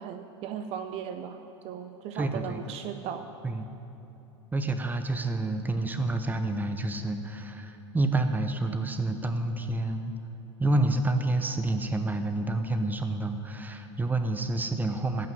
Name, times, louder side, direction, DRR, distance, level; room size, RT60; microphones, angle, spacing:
voice 1, 0.0-3.3, right 8 dB, 45° right, 8 dB, 0.6 m, -37 dB
voice 2, 2.1-2.7 3.4-3.7 4.5-10.1 10.6-15.3, right 2 dB, 10° right, 8 dB, 1.0 m, -28 dB
15.0 x 6.0 x 9.4 m, 3.0 s
figure-of-eight pair, 85°, 15 cm